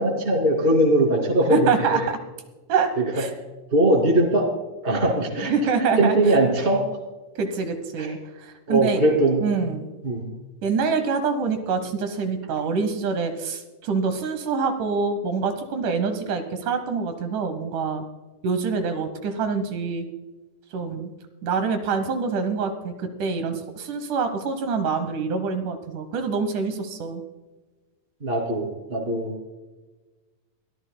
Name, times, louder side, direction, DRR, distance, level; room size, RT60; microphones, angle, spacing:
voice 1, 0.0-2.1 3.0-3.2 3.7-4.5 4.8-6.8 8.0-8.1 8.7-9.4 10.0-10.3 28.2-29.3, right 1 dB, 20° right, 2 dB, 2.2 m, -21 dB
voice 2, 1.5-2.2 2.7-3.3 5.5-6.2 7.4-8.2 8.7-9.0 9.4-9.9 10.6-18.0 18.4-20.1 20.7-21.1 21.4-22.9 23.2-27.2, right 5 dB, 75° right, 8 dB, 2.5 m, -25 dB
23.0 x 14.0 x 2.2 m, 1.2 s
omnidirectional pair, 3.7 m